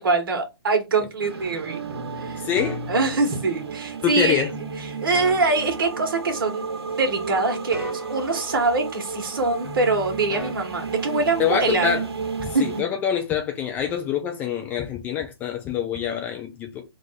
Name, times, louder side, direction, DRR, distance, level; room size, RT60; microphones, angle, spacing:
voice 1, 0.0-1.8 2.2-2.5 2.9-4.5 4.8-12.0 12.5-12.8, right 3 dB, 55° right, 1.5 m, -24 dB
sound 1, 1.2-12.8, right 5 dB, 75° right, 1.1 m, -33 dB
sound 2, 1.9-3.9 4.5-6.8 7.1-9.4 9.6-11.7, right 1 dB, 5° right, 1.4 m, -38 dB
voice 2, 2.4-2.8 4.0-4.5 11.4-12.0 12.4-16.8, left 8 dB, 15° left, 0.4 m, -25 dB
3.5 x 2.4 x 4.1 m
figure-of-eight pair, 135°, 14 cm